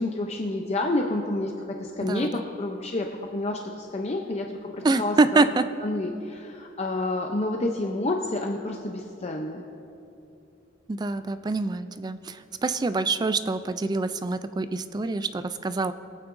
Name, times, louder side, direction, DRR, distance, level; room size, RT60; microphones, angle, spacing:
voice 1, 0.0-5.4 5.8-9.6, left 2 dB, 35° left, 2 dB, 0.6 m, -29 dB
voice 2, 4.8-5.6 10.9-12.4 12.6-15.9, right 3 dB, 20° right, 12 dB, 0.3 m, -25 dB
23.0 x 8.7 x 2.6 m, 2.7 s
head